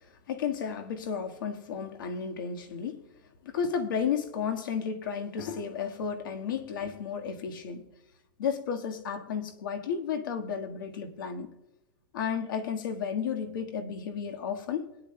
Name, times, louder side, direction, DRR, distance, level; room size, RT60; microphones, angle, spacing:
voice 1, 0.3-3.0 3.4-7.8 8.4-11.5 12.1-14.9, left 7 dB, 50° left, 4 dB, 1.6 m, -33 dB
21.0 x 10.5 x 2.2 m, 0.94 s
supercardioid pair, 180°, 14 cm